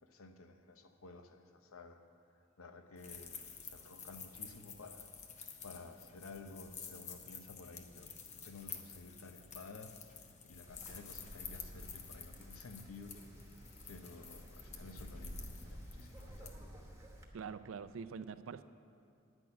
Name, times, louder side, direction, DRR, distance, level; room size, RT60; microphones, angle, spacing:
voice 1, 0.0-2.0 2.6-3.4 3.6-5.1 5.6-8.1 8.4-10.0 10.4-13.2 13.9-16.6, left 3 dB, 80° left, 7 dB, 0.8 m, -53 dB
sound 1, 3.0-16.5, left 6 dB, 35° left, 0.8 m, -51 dB
Wind, 10.6-17.2, equal, 15° right, 1.1 m, -51 dB
voice 2, 17.3-18.6, right 6 dB, 70° right, 13 dB, 0.4 m, -44 dB
9.9 x 6.3 x 8.8 m, 2.5 s
head